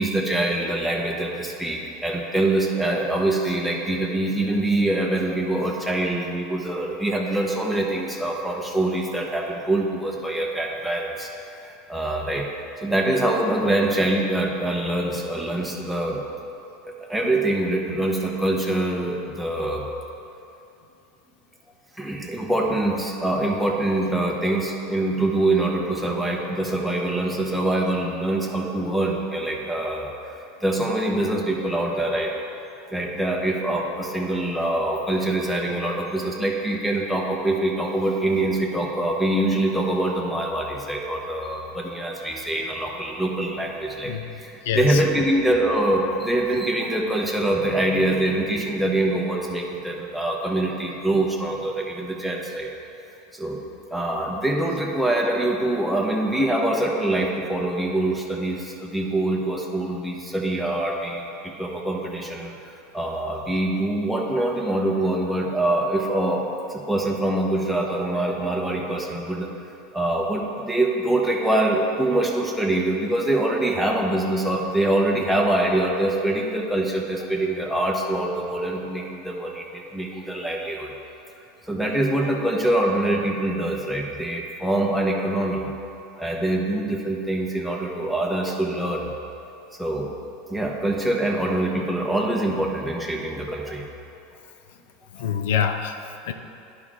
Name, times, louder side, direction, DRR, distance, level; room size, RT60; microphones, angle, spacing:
voice 1, 0.0-12.5 12.8-16.2 16.8-19.8 22.0-32.3 32.9-52.7 53.3-53.6 53.9-69.5 69.9-80.9 81.6-85.7 86.2-89.1 89.8-90.1 90.5-93.8 95.2-95.3, right 1 dB, ahead, 0 dB, 1.0 m, -24 dB
voice 2, 44.6-45.0 95.1-96.3, left 8 dB, 80° left, 7 dB, 0.5 m, -26 dB
10.5 x 4.9 x 3.8 m, 2.7 s
supercardioid pair, 115°, 0 cm